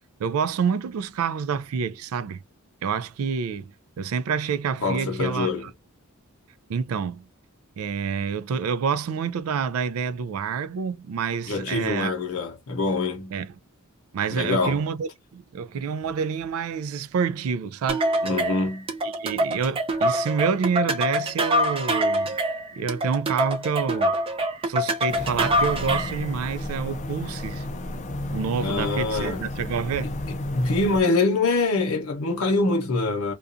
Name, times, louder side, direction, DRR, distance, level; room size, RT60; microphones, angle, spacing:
voice 1, 0.2-2.4 2.8-5.7 6.7-7.3 7.8-12.1 13.3-13.5 14.1-18.1 19.0-22.4 22.8-24.1 24.7-27.7 28.3-30.1, right 6 dB, 75° right, 0.3 m, -28 dB
voice 2, 4.8-5.7 11.5-13.4 14.3-14.8 18.2-18.9 28.6-29.5 30.0-30.1 30.5-33.3, left 3 dB, 80° left, 0.8 m, -25 dB
sound 1, 17.9-26.2, right 1 dB, 25° right, 0.5 m, -25 dB
sound 2, 25.1-31.0, left 1 dB, 35° left, 0.4 m, -33 dB
2.4 x 2.3 x 2.5 m
head